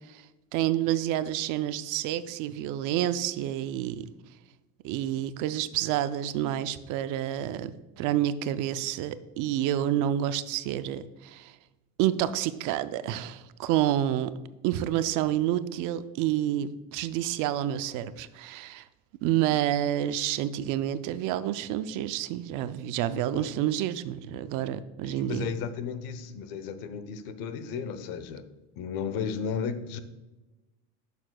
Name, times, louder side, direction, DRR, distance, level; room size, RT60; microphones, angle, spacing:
voice 1, 0.5-4.1 4.8-11.5 12.0-14.3 14.6-18.8 19.2-25.5, right 12 dB, 60° right, 13 dB, 0.5 m, -29 dB
voice 2, 25.0-28.5 28.8-30.0, left 6 dB, 70° left, 11 dB, 0.8 m, -34 dB
11.0 x 6.7 x 2.2 m, 1.1 s
cardioid pair, 160°, 35 cm